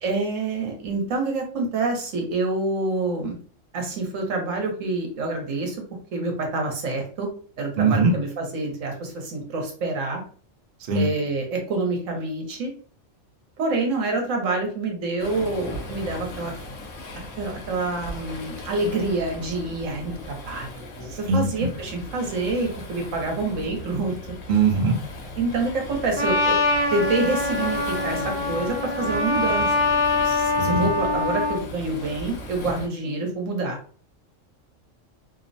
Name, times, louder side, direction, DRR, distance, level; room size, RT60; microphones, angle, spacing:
voice 1, 0.0-3.4 3.7-5.8 6.1-7.3 7.6-10.2 10.9-12.7 13.6-16.5 17.4-24.1 25.4-26.6 26.9-29.7 30.6-33.8, right 3 dB, 80° right, 2 dB, 1.1 m, -27 dB
voice 2, 7.8-8.1 10.9-11.1 21.3-21.7 24.5-25.0 30.2-30.9, right 4 dB, 60° right, 3 dB, 0.6 m, -21 dB
Waves surf, 15.2-32.9, left 1 dB, 75° left, 1.1 m, -37 dB
Trumpet, 26.2-31.6, left 2 dB, 30° left, 1.0 m, -24 dB
2.8 x 2.0 x 2.6 m, 0.43 s
omnidirectional pair, 1.3 m